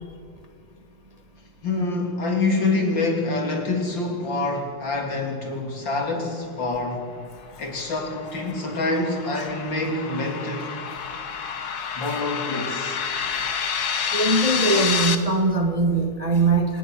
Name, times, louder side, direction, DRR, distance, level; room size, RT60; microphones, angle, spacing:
voice 1, 1.6-7.1 7.6-10.7 12.0-13.0, left 2 dB, 40° left, 2 dB, 3.5 m, -26 dB
sound 1, 7.4-15.1, left 6 dB, 60° left, 1.0 m, -29 dB
voice 2, 14.1-16.8, right 3 dB, 65° right, 3 dB, 0.3 m, -21 dB
26.5 x 19.0 x 6.3 m, 2.2 s
omnidirectional pair, 3.5 m